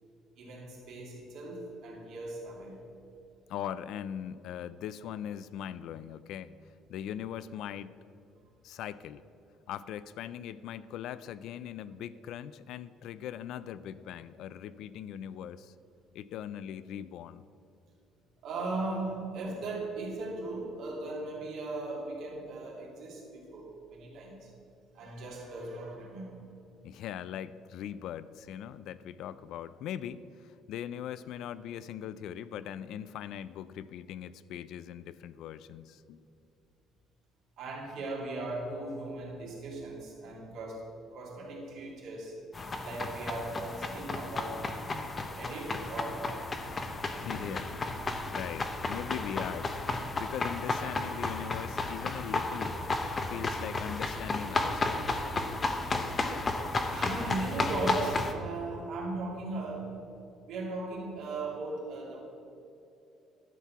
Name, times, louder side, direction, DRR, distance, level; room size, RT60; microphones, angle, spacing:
voice 1, 0.4-2.8 18.4-24.5 24.9-26.3 37.6-40.8 41.1-42.3 42.8-44.6 45.4-46.3 47.1-47.6 56.9-60.0 60.5-62.2, right 2 dB, 55° right, -3 dB, 2.5 m, -38 dB
voice 2, 3.5-6.5 6.9-7.9 8.6-9.2 9.7-15.7 16.1-17.4 26.8-36.2 47.2-47.7 48.2-52.8 53.3-55.3, left 10 dB, 60° left, 16 dB, 0.3 m, -40 dB
sound 1, 42.5-58.3, left 3 dB, 20° left, 0.6 m, -33 dB
11.5 x 4.6 x 6.9 m, 2.7 s
cardioid pair, 175°, 0 cm